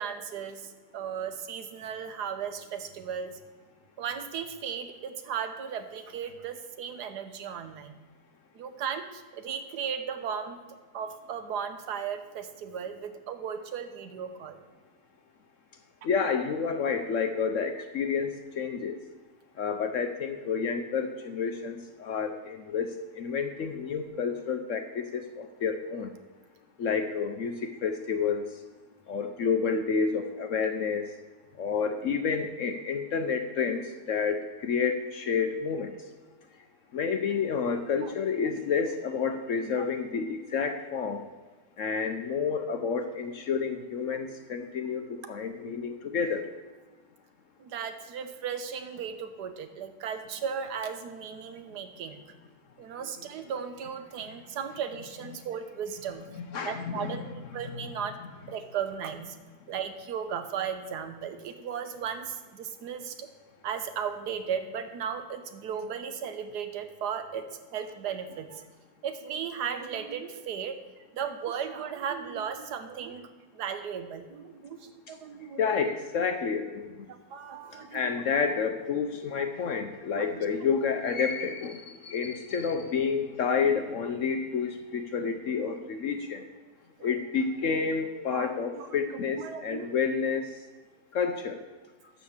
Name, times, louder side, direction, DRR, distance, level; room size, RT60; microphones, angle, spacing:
voice 1, 0.0-3.4 4.0-8.0 8.5-10.6 10.9-14.6 38.0-38.1 38.4-38.6 39.6-39.7 44.1-44.2 47.6-52.2 52.8-56.2 56.6-58.2 58.5-59.4 59.7-63.3 63.6-68.7 69.0-70.8 71.1-73.3 73.5-75.7 76.3-76.4 77.1-78.1 80.1-80.4 83.5-83.6 85.6-85.7 87.0-87.1 88.3-89.9, right 7 dB, 65° right, 8 dB, 1.3 m, -36 dB
voice 2, 16.0-19.0 19.6-26.1 26.8-28.6 29.1-31.1 31.6-35.9 36.9-41.2 41.8-46.5 56.4-57.2 57.6-57.8 75.1-75.2 75.6-77.1 77.7-86.4 87.0-90.5 91.1-91.6, left 6 dB, 65° left, 6 dB, 0.8 m, -30 dB
12.0 x 4.2 x 7.2 m, 1.4 s
omnidirectional pair, 1.9 m